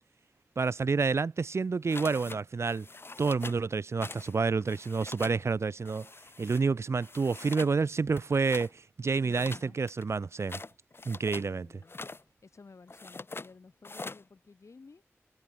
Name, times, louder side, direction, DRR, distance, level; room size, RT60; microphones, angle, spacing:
voice 1, 0.6-2.9 3.2-6.1 6.4-10.6 11.1-11.7, right 4 dB, 65° right, 0.4 m, -29 dB
sound 1, 1.9-2.4 2.7-3.6 4.0-4.4 4.6-5.4 5.9-6.6 7.0-7.8 8.1-8.7 9.3-11.5 11.8-12.2 12.9-13.5 13.8-14.2, left 3 dB, 50° left, 0.8 m, -43 dB
voice 2, 9.2-9.8 11.3-15.0, left 4 dB, 80° left, 2.5 m, -54 dB
cardioid pair, 40°, 5 cm